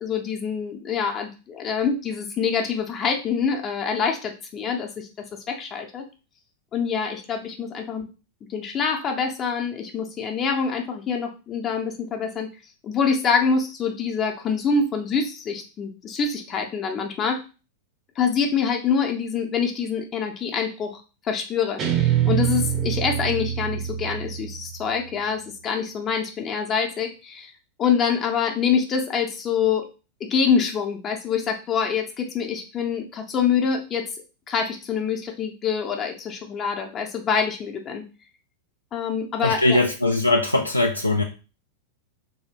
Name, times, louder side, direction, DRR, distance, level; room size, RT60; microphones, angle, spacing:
voice 1, 0.0-5.1 5.5-6.0 6.7-8.1 8.5-12.5 12.8-17.4 18.2-27.5 27.8-29.9 30.3-34.1 34.5-38.0 38.9-39.8, left 6 dB, 30° left, 3 dB, 0.5 m, -25 dB
Guitar, 21.8-25.0, right 10 dB, 30° right, 0.6 m, -25 dB
voice 2, 39.4-41.2, left 2 dB, 85° left, 2 dB, 0.3 m, -20 dB
3.2 x 2.7 x 2.9 m, 0.32 s
figure-of-eight pair, 90°, 0 cm